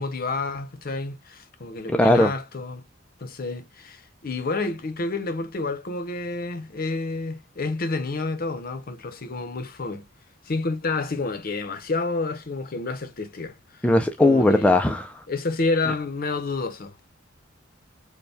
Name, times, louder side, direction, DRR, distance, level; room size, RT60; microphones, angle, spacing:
voice 1, 0.0-2.8 3.2-10.1 10.4-13.9 14.2-14.8 15.3-17.1, left 3 dB, 50° left, 0.7 m, -29 dB
voice 2, 1.9-2.3 13.8-15.2, left 1 dB, 5° left, 0.4 m, -18 dB
4.3 x 2.2 x 3.3 m
head